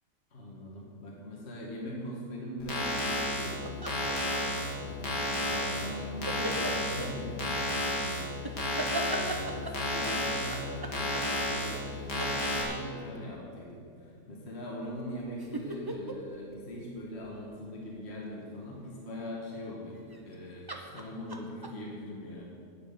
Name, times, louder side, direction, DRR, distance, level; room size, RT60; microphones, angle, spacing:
voice 1, 0.3-22.4, left 1 dB, 40° left, -3 dB, 2.1 m, -41 dB
sound 1, 2.6-12.6, left 1 dB, 75° left, 3.0 m, -32 dB
sound 2, 3.6-4.8 6.3-7.1 8.4-9.9 10.5-11.9 12.2-13.1 14.9-17.6 20.0-20.3 20.7-21.7, right 1 dB, 15° right, 0.9 m, -38 dB
13.0 x 9.3 x 7.0 m, 2.4 s
omnidirectional pair, 1.8 m